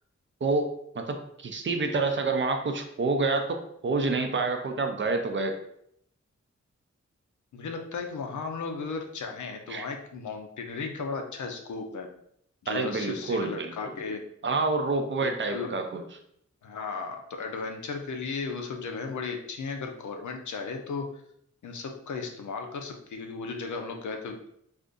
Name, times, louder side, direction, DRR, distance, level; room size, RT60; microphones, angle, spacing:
voice 1, 0.4-5.6 9.7-9.9 12.7-13.7 14.4-16.0, right 3 dB, 40° right, 5 dB, 0.4 m, -28 dB
voice 2, 7.5-12.1 12.6-14.3 15.2-15.7 16.6-21.2 21.6-24.5, left 4 dB, 90° left, 4 dB, 0.5 m, -35 dB
2.5 x 2.4 x 3.6 m, 0.71 s
wide cardioid pair, 130°, 29 cm